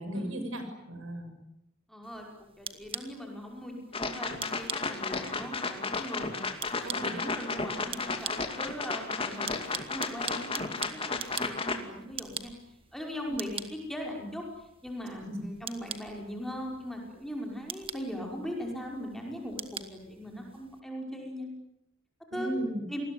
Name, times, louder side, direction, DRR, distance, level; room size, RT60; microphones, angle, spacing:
voice 1, 0.0-1.3 6.8-7.2 13.3-13.4 15.3-15.4 22.3-22.9, right 1 dB, 70° right, 8 dB, 6.6 m, -36 dB
voice 2, 1.9-2.3 2.6-6.4 6.8-12.5 12.9-14.4 14.8-21.5 22.3-22.5 22.9-23.0, equal, ahead, 0 dB, 5.6 m, -39 dB
sound 1, 2.0-20.8, right 6 dB, 25° right, 1.6 m, -44 dB
sound 2, 3.9-11.8, left 3 dB, 25° left, 2.5 m, -33 dB
28.5 x 20.5 x 9.6 m, 0.82 s
head